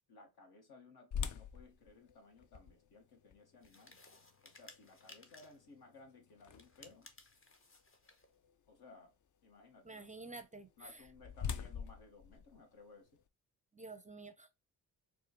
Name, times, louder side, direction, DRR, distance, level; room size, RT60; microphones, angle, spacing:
voice 1, 0.1-4.0 4.4-7.1 8.7-9.1 9.4-10.1 10.8-13.2, left 3 dB, 65° left, 1.3 m, -59 dB
sound 1, 1.1-7.1 7.6-7.7 8.3-8.5 10.6-13.3, left 7 dB, 50° left, 0.6 m, -45 dB
sound 2, 3.6-5.7 6.5-8.3, left 2 dB, 30° left, 1.0 m, -60 dB
voice 2, 9.9-10.7 13.7-14.5, right 3 dB, 20° right, 0.5 m, -49 dB
4.1 x 2.4 x 2.9 m
supercardioid pair, 45°, 41 cm